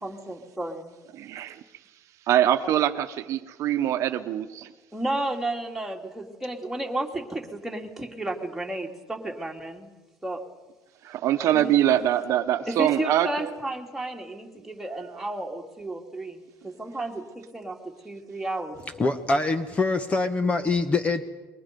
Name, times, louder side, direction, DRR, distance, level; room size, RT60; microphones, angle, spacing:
voice 1, 0.0-0.9 4.9-9.9 10.2-10.4 11.5-11.8 12.7-17.8 18.0-18.8, right 1 dB, 5° right, 0 dB, 2.9 m, -32 dB
voice 2, 1.2-1.6 2.3-4.7 11.0-13.5, right 11 dB, 55° right, 8 dB, 1.1 m, -24 dB
voice 3, 18.9-21.2, left 3 dB, 20° left, 10 dB, 1.2 m, -24 dB
29.0 x 22.5 x 5.4 m, 1.2 s
cardioid pair, 130°, 6 cm